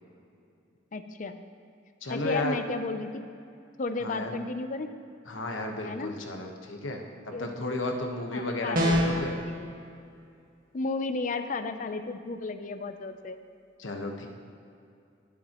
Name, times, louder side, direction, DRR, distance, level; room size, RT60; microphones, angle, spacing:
voice 1, 0.9-1.4 2.1-3.3 3.8-4.9 5.8-6.1 7.3-7.8 8.3-9.7 10.7-13.4, left 3 dB, 40° left, 9 dB, 0.5 m, -34 dB
voice 2, 2.0-2.5 4.0-4.3 5.3-9.3 13.8-14.3, left 2 dB, 80° left, 2 dB, 1.2 m, -33 dB
sound 1, 8.7-9.3, equal, 45° right, 1.6 m, -23 dB
19.5 x 7.1 x 3.0 m, 2.5 s
head